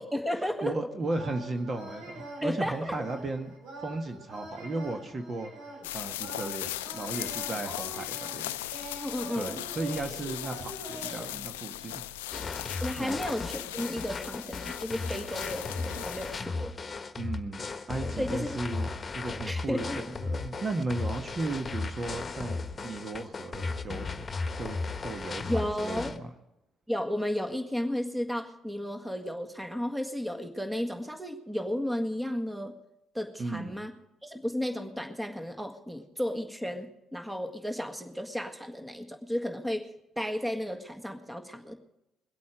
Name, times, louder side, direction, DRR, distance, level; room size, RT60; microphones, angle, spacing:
voice 1, 0.0-0.9 2.4-2.9 7.7-8.1 9.0-9.6 10.3-10.5 12.8-16.7 18.2-18.5 19.4-20.0 25.5-26.2 26.9-32.8 33.1-33.9 34.2-41.7, equal, 10° right, 6 dB, 1.7 m, -33 dB
voice 2, 0.6-3.5 3.8-5.5 5.9-8.5 9.3-12.0 13.0-13.2 17.1-24.3 24.5-24.8 25.0-26.3 33.4-33.8, right 2 dB, 40° right, 6 dB, 1.6 m, -35 dB
sound 1, 1.1-11.3, right 2 dB, 70° right, 6.3 m, -45 dB
sound 2, 5.8-16.4, left 15 dB, 90° left, 0.4 m, -38 dB
sound 3, 12.3-26.2, left 3 dB, 30° left, 1.3 m, -36 dB
22.0 x 8.5 x 5.0 m, 0.89 s
hypercardioid pair, 55°, 0 cm